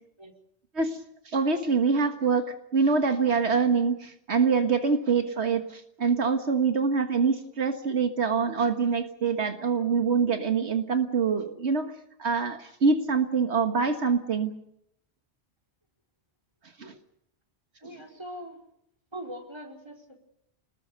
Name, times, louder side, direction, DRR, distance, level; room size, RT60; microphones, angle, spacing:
voice 1, 1.3-11.9 12.2-14.5 16.8-16.9, right 5 dB, 75° right, 6 dB, 1.8 m, -25 dB
voice 2, 17.8-18.6 19.1-20.2, right 1 dB, 25° right, 4 dB, 4.7 m, -41 dB
28.0 x 20.0 x 6.7 m, 0.75 s
omnidirectional pair, 1.1 m